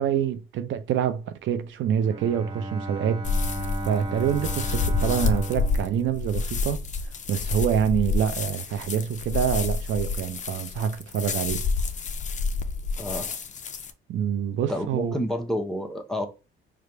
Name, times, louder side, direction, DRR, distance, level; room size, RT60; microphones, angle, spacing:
voice 1, 0.0-6.8 7.3-11.6 14.1-15.2, right 8 dB, 75° right, 0.5 m, -26 dB
Bowed string instrument, 1.9-6.8, right 1 dB, 25° right, 0.9 m, -35 dB
sound 1, 3.2-13.9, left 4 dB, 40° left, 0.5 m, -29 dB
voice 2, 14.7-16.3, equal, ahead, 0.8 m, -29 dB
3.3 x 2.5 x 4.3 m
cardioid pair, 90°, 20 cm